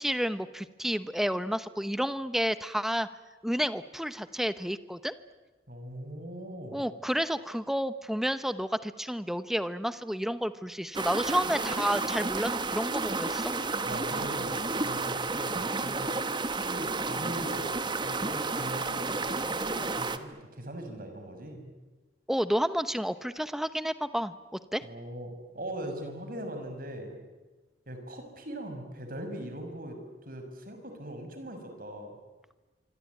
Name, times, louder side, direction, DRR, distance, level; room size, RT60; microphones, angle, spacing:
voice 1, 0.0-3.1 3.4-5.1 6.7-13.6 22.3-24.3 24.7-24.8, equal, ahead, 13 dB, 0.9 m, -30 dB
voice 2, 5.7-6.9 13.8-16.1 16.6-21.7 24.8-27.2 27.9-32.2, right 1 dB, 50° right, 6 dB, 5.8 m, -40 dB
sound 1, 10.9-20.2, right 3 dB, 25° right, 1.2 m, -31 dB
25.5 x 25.0 x 9.4 m, 1.2 s
head